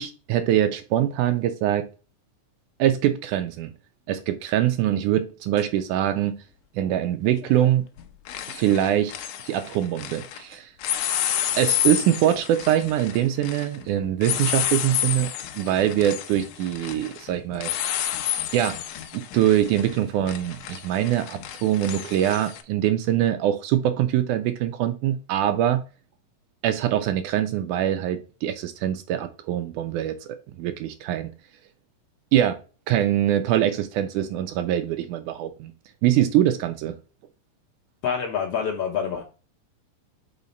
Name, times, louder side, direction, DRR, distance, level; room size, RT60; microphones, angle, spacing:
voice 1, 0.0-1.9 2.8-3.7 4.1-6.4 6.8-7.9 8.5-9.1 9.5-10.7 11.6-17.7 18.5-18.8 19.1-25.8 26.6-31.3 32.3-32.6 32.9-35.7 36.0-36.9, right 11 dB, 80° right, 2.0 m, -23 dB
sound 1, 5.6-5.7 7.4-7.7 8.0-10.4 10.8-22.6, left 11 dB, 80° left, 2.2 m, -30 dB
voice 2, 38.0-39.2, left 7 dB, 65° left, 1.6 m, -26 dB
5.6 x 4.1 x 5.2 m
omnidirectional pair, 3.9 m